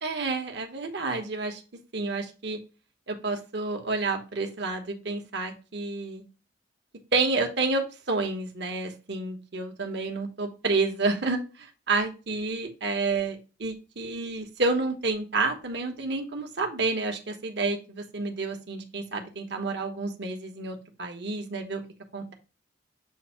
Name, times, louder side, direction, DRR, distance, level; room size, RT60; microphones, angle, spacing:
voice 1, 0.0-1.6 1.9-2.6 3.1-6.2 7.1-21.8 22.1-22.3, right 3 dB, 65° right, 4 dB, 1.1 m, -29 dB
7.6 x 2.6 x 5.5 m, 0.32 s
head